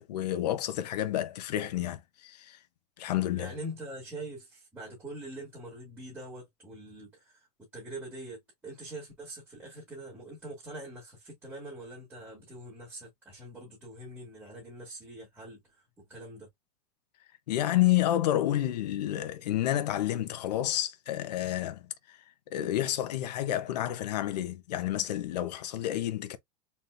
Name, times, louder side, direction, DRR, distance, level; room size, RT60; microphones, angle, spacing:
voice 1, 0.0-2.6 3.0-3.5 17.5-22.2 22.5-26.4, left 13 dB, 85° left, 1.0 m, -30 dB
voice 2, 3.3-7.5 7.7-16.5, right 1 dB, 10° right, 2.2 m, -44 dB
4.3 x 3.4 x 2.6 m
supercardioid pair, 165°, 20 cm